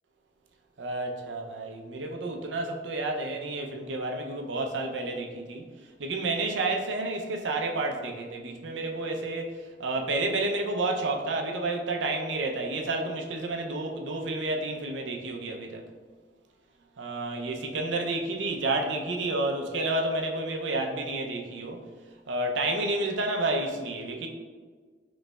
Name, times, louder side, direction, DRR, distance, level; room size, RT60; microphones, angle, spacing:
voice 1, 0.8-5.6 6.0-15.8 17.0-21.8 22.3-24.3, right 2 dB, 75° right, 2 dB, 0.5 m, -30 dB
5.0 x 3.2 x 2.3 m, 1.5 s
head